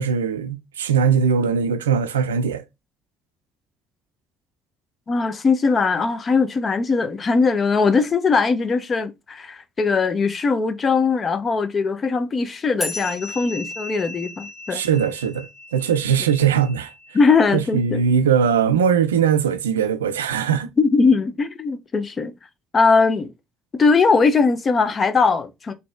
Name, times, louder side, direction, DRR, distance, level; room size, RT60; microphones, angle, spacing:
voice 1, 0.0-2.6 14.7-15.5 15.7-16.9 17.5-20.7, right 7 dB, 85° right, 0.4 m, -20 dB
voice 2, 5.1-14.8 17.1-18.0 20.8-22.3 22.7-23.3 23.7-25.7, left 4 dB, 40° left, 0.7 m, -20 dB
sound 1, 12.8-17.7, left 2 dB, 20° left, 1.5 m, -36 dB
4.1 x 2.8 x 3.3 m
figure-of-eight pair, 50°, 0 cm